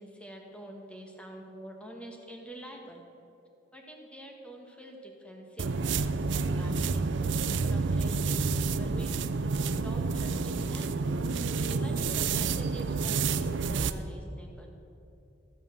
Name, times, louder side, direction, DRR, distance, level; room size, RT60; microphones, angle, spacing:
voice 1, 0.0-3.0 3.7-7.0 7.6-11.0 11.3-14.7, equal, 5° left, 1 dB, 1.4 m, -47 dB
sound 1, 5.6-14.0, right 4 dB, 75° right, 0.5 m, -29 dB
14.0 x 7.3 x 6.6 m, 2.8 s
head